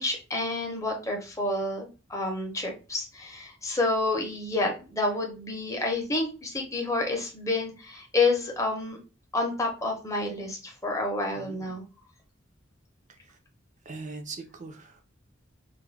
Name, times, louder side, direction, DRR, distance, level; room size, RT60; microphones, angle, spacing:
voice 1, 0.0-9.0 9.3-11.8, left 2 dB, 15° left, 1 dB, 0.7 m, -29 dB
voice 2, 11.3-11.8 13.9-15.0, right 3 dB, 40° right, 5 dB, 0.5 m, -41 dB
2.3 x 2.1 x 3.1 m, 0.32 s
head